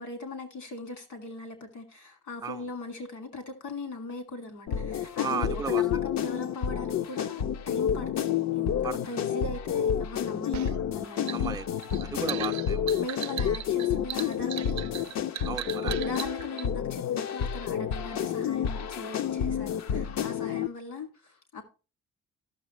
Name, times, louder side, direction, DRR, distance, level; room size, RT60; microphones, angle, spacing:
voice 1, 0.0-11.3 12.3-12.5 13.0-15.1 15.8-21.6, left 3 dB, 85° left, 2.5 m, -39 dB
sound 1, 4.7-20.7, left 9 dB, 65° left, 0.6 m, -30 dB
voice 2, 5.2-5.8 8.8-9.2 11.3-11.7 12.0-13.0 15.4-15.9, right 6 dB, 15° right, 0.5 m, -35 dB
sound 2, 10.5-16.7, right 12 dB, 70° right, 0.4 m, -38 dB
14.5 x 6.3 x 3.0 m
cardioid pair, 90°, 30 cm